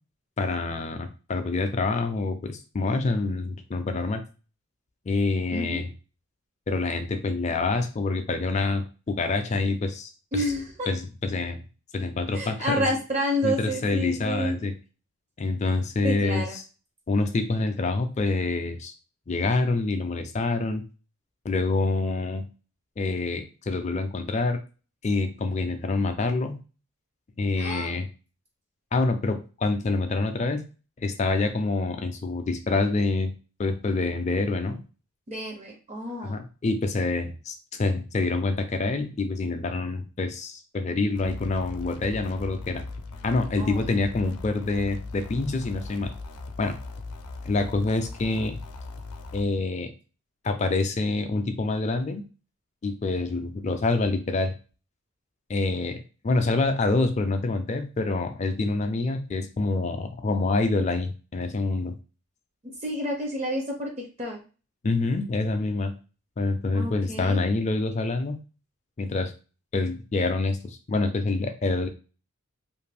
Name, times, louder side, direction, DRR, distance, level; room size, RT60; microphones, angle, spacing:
voice 1, 0.4-4.2 5.1-5.9 6.7-10.4 10.9-11.6 11.9-13.0 13.4-14.7 15.4-16.6 17.1-18.9 19.3-20.8 21.4-22.5 23.0-24.6 25.0-26.6 27.4-28.1 28.9-30.7 31.0-33.3 33.6-34.8 36.2-42.8 43.2-46.1 46.6-46.8 47.4-48.6 49.3-49.9 50.4-52.2 52.8-54.5 55.5-62.0 64.8-65.9 66.4-68.4 69.0-69.3 69.7-71.9, left 3 dB, 30° left, 7 dB, 0.3 m, -26 dB
voice 2, 5.5-5.8 10.3-10.9 12.3-14.6 16.0-16.6 27.6-27.9 35.3-36.4 43.6-43.8 62.8-63.9 64.2-64.4 66.7-67.4, equal, 30° right, 1 dB, 0.5 m, -29 dB
sound 1, 41.1-49.4, left 3 dB, 90° left, 0.5 m, -39 dB
2.5 x 2.5 x 3.3 m, 0.35 s
head